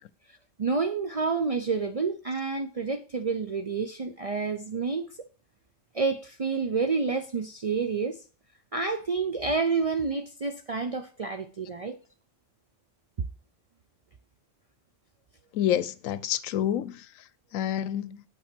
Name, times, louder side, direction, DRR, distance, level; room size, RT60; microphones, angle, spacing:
voice 1, 0.6-5.3 5.9-8.2 8.7-12.0, right 4 dB, 65° right, 0.3 m, -29 dB
voice 2, 15.5-18.2, left 10 dB, 85° left, 1.0 m, -29 dB
7.8 x 5.7 x 4.4 m
omnidirectional pair, 1.3 m